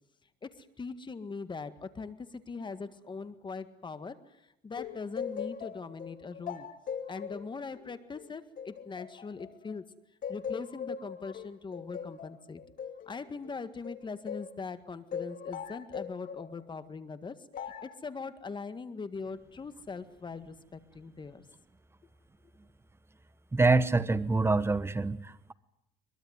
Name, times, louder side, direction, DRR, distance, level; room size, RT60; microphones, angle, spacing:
voice 1, 0.4-6.7 7.1-9.9 10.3-12.6 13.1-21.4, left 4 dB, 25° left, 11 dB, 1.8 m, -41 dB
sound 1, 4.8-9.8 10.2-14.6 15.1-16.5 17.5-18.0, left 7 dB, 55° left, 2.3 m, -40 dB
voice 2, 23.5-25.5, right 3 dB, 15° right, 14 dB, 1.2 m, -26 dB
22.5 x 22.5 x 9.6 m, 0.80 s
cardioid pair, 110°, 17 cm